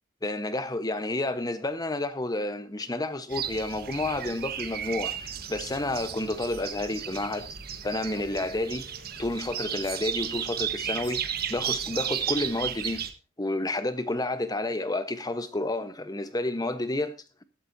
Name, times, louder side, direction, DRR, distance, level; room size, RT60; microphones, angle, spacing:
voice 1, 0.2-7.5 7.8-8.9 9.2-13.0 13.4-17.1, left 2 dB, 20° left, 1.1 m, -30 dB
sound 1, 3.3-13.1, right 9 dB, 50° right, 1.4 m, -34 dB
15.0 x 12.5 x 2.7 m
head